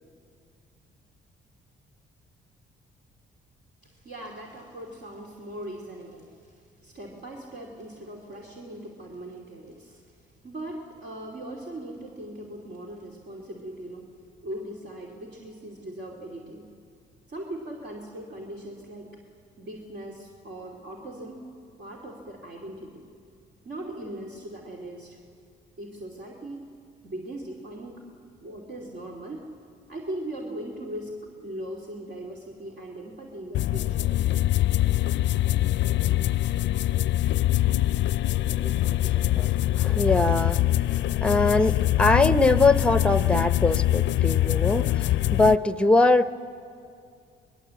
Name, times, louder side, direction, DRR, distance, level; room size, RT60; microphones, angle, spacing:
voice 1, 3.8-6.3 6.8-10.0 10.4-14.0 14.4-16.6 17.3-19.1 19.6-21.4 21.8-23.0 23.6-25.2 25.8-26.7 27.0-28.0 28.4-29.5 29.9-31.1 31.4-34.1, right 1 dB, 60° right, -1 dB, 2.6 m, -39 dB
sound 1, 33.5-45.6, left 14 dB, 65° left, 0.5 m, -24 dB
voice 2, 38.5-46.3, left 2 dB, 5° left, 12 dB, 0.7 m, -23 dB
24.0 x 20.0 x 7.6 m, 2.4 s
cardioid pair, 90°, 20 cm